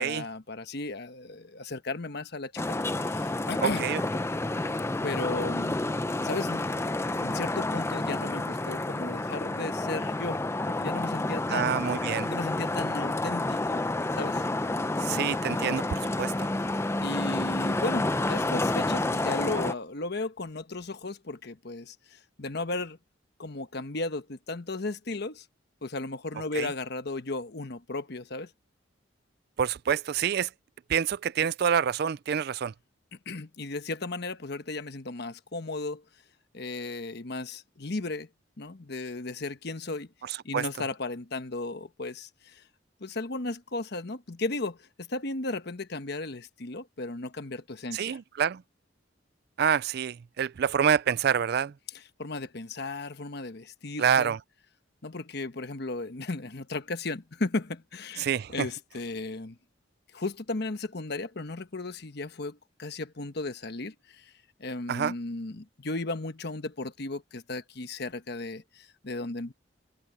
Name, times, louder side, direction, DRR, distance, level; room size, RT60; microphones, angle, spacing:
voice 1, 0.0-3.8 5.0-5.8 6.2-10.4 10.7-11.8 12.3-13.8 14.1-14.4 17.0-23.0 23.4-25.5 25.8-28.5 33.3-36.0 36.5-38.3 38.6-40.1 40.4-42.6 43.0-48.2 52.2-54.4 55.0-59.6 60.1-64.3 64.6-69.5, left 2 dB, 55° left, 1.1 m, -35 dB
Traffic noise roadway noise, 2.6-19.7, left 2 dB, 15° left, 0.5 m, -29 dB
voice 2, 3.6-4.0 11.5-12.3 15.0-16.5 26.5-26.7 29.6-30.5 30.9-32.7 40.2-40.6 47.9-48.6 49.6-51.7 54.0-54.4 58.2-58.7 64.9-65.1, right 8 dB, 55° right, 0.4 m, -27 dB
head